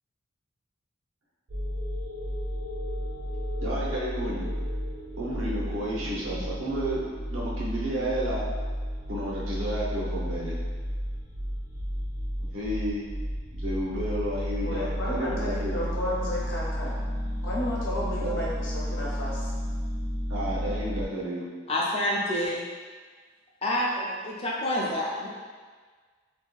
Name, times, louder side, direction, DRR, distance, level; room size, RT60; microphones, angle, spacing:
sound 1, 1.5-21.0, equal, 45° right, 0.4 m, -32 dB
voice 1, 3.6-4.5 5.2-8.4 9.1-10.6 12.5-13.1 13.5-15.9 18.2-18.4 20.3-21.5, right 1 dB, 85° right, -6 dB, 0.7 m, -31 dB
voice 2, 14.6-17.0 17.4-19.5, left 1 dB, 75° left, -6 dB, 0.7 m, -33 dB
voice 3, 21.7-22.7 23.6-25.3, left 1 dB, 30° left, -4 dB, 0.4 m, -28 dB
2.6 x 2.2 x 2.3 m, 1.5 s
head